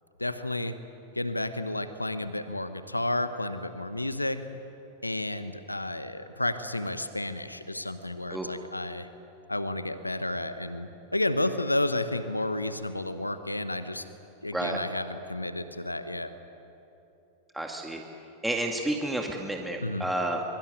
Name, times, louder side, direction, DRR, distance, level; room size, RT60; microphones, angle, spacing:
voice 1, 0.2-0.8 1.1-4.4 5.0-9.1 9.5-14.1 14.4-16.3 19.8-20.0, left 1 dB, 85° left, 11 dB, 1.1 m, -31 dB
voice 2, 17.5-18.0 18.4-20.4, right 1 dB, 5° right, 1 dB, 2.1 m, -30 dB
24.0 x 23.5 x 9.6 m, 2.9 s
figure-of-eight pair, 90°, 0 cm